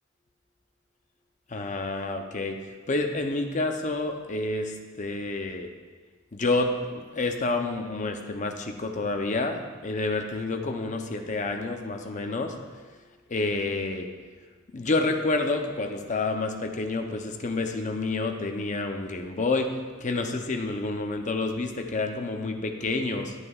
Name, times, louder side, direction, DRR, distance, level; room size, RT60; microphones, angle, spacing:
voice 1, 1.5-2.6 2.9-5.7 6.3-12.5 13.3-14.1 14.7-19.7 20.0-23.3, left 3 dB, 40° left, 4 dB, 0.7 m, -29 dB
11.5 x 8.0 x 2.4 m, 1.5 s
head